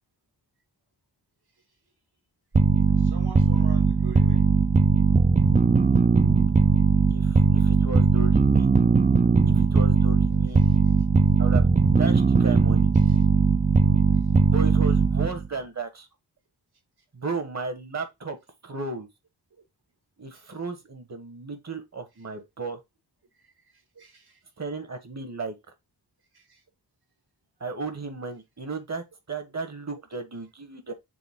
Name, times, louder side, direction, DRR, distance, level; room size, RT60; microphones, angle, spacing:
sound 1, 2.5-15.5, right 4 dB, 20° right, 0.4 m, -19 dB
voice 1, 3.0-4.4 10.6-10.8 12.9-13.3 20.3-20.5 23.4-23.5 23.7-24.4 26.3-26.6, right 4 dB, 70° right, 2.2 m, -46 dB
voice 2, 7.1-8.7 9.5-10.6 11.4-11.7 12.0-12.9 14.5-16.1 17.1-18.4 18.6-19.1 20.2-22.8 24.6-25.5 27.6-30.9, right 3 dB, 40° right, 1.4 m, -34 dB
7.0 x 3.7 x 3.6 m
wide cardioid pair, 145°, 40 cm